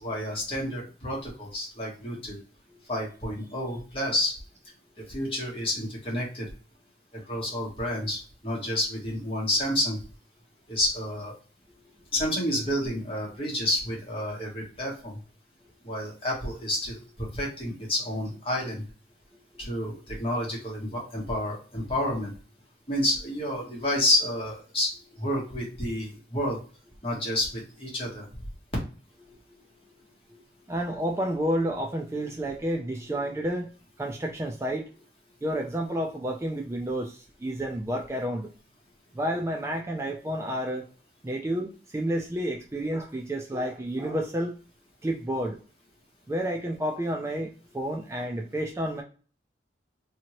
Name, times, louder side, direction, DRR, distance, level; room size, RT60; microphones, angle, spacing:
voice 1, 0.0-2.4 2.9-4.3 5.0-6.5 7.3-10.0 10.7-11.3 12.1-15.2 15.8-18.8 19.6-22.3 22.9-24.9 25.2-26.6 27.0-28.3, left 1 dB, 30° left, -3 dB, 1.2 m, -29 dB
voice 2, 29.2-29.6 30.3-30.4 30.7-33.7 34.0-34.8 35.4-38.5 39.1-40.9 41.2-44.6 45.0-45.6 46.3-49.0, right 1 dB, 15° right, 2 dB, 0.3 m, -30 dB
2.8 x 2.6 x 2.9 m, 0.38 s
head